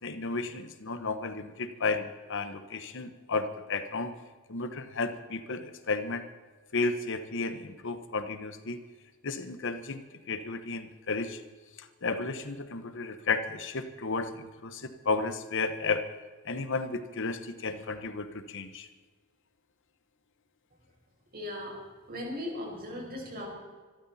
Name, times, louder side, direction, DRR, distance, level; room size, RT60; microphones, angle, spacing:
voice 1, 0.0-4.1 4.5-6.2 6.7-8.8 9.2-10.0 10.3-11.4 12.0-16.0 16.5-18.9, left 3 dB, 60° left, 10 dB, 1.1 m, -33 dB
voice 2, 21.3-21.8 22.1-23.5, left 1 dB, 45° right, 0 dB, 5.3 m, -37 dB
25.0 x 13.0 x 4.3 m, 1.4 s
head